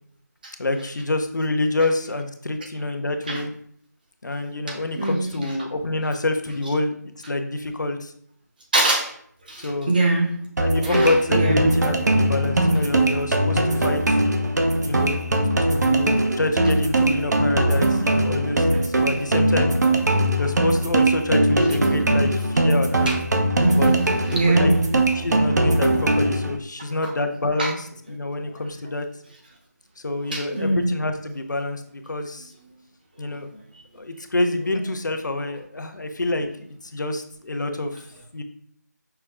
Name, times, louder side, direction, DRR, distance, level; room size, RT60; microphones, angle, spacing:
voice 1, 0.6-3.5 4.2-7.0 7.2-8.1 9.6-9.9 10.6-14.2 14.8-15.1 15.6-19.7 20.4-23.1 23.7-23.9 24.5-29.1 30.0-32.5 33.2-33.5 33.9-36.5 36.9-37.9 38.3-38.4, left 2 dB, 85° left, 6 dB, 0.7 m, -27 dB
voice 2, 4.7-5.3 8.7-9.1 9.5-10.4 10.8-11.8 23.1-23.2 23.6-24.9 27.6-27.7 30.3-30.9, right 2 dB, 30° right, 0 dB, 0.8 m, -23 dB
sound 1, 10.6-26.6, right 1 dB, 70° right, 0.7 m, -21 dB
5.6 x 2.2 x 3.5 m, 0.64 s
figure-of-eight pair, 170°, 10 cm